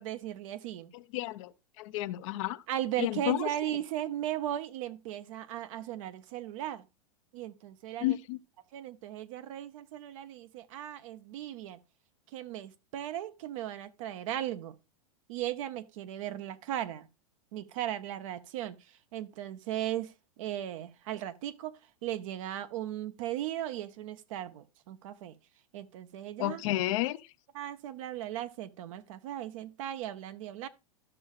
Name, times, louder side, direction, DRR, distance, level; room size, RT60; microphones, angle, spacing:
voice 1, 0.0-0.9 2.7-6.9 7.3-8.2 8.7-11.8 12.3-14.8 15.3-17.1 17.5-18.8 19.1-20.1 20.4-25.4 25.7-26.6 27.5-30.7, right 12 dB, 60° right, 0.7 m, -37 dB
voice 2, 0.9-2.6 3.0-3.5 8.0-8.4 26.4-27.3, left 16 dB, 55° left, 0.5 m, -32 dB
13.0 x 6.2 x 2.4 m
hypercardioid pair, 100°, 19 cm